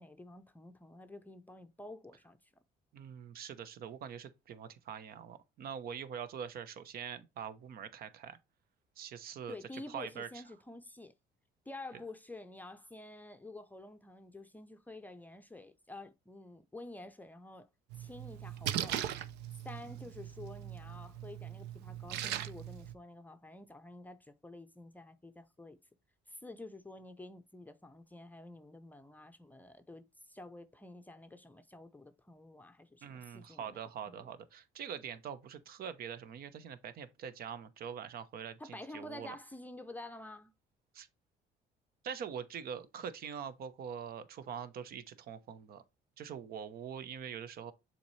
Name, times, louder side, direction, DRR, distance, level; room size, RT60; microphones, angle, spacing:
voice 1, 0.0-2.5 9.5-11.1 11.7-17.7 18.0-19.0 19.6-25.8 26.3-33.8 34.1-34.3 38.6-40.5, left 2 dB, 10° left, 0.6 m, -49 dB
voice 2, 2.9-8.4 9.0-10.3 33.0-39.3 40.9-41.1 42.0-45.8 46.2-47.7, right 8 dB, 60° right, 0.9 m, -44 dB
Splash splatter, 17.9-22.9, right 11 dB, 90° right, 0.6 m, -40 dB
7.0 x 4.4 x 3.2 m
cardioid pair, 110°, 17 cm